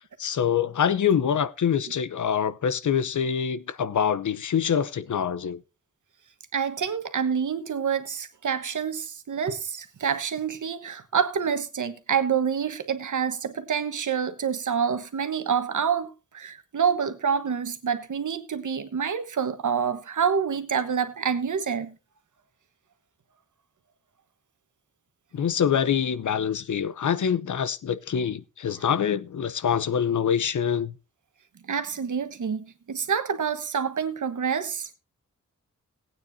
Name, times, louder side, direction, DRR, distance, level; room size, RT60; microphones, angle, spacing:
voice 1, 0.2-5.6 25.3-30.9, left 8 dB, 75° left, 0.7 m, -25 dB
voice 2, 6.5-22.0 31.7-34.9, right 7 dB, 80° right, 1.3 m, -27 dB
18.5 x 9.1 x 2.7 m
wide cardioid pair, 130°, 30 cm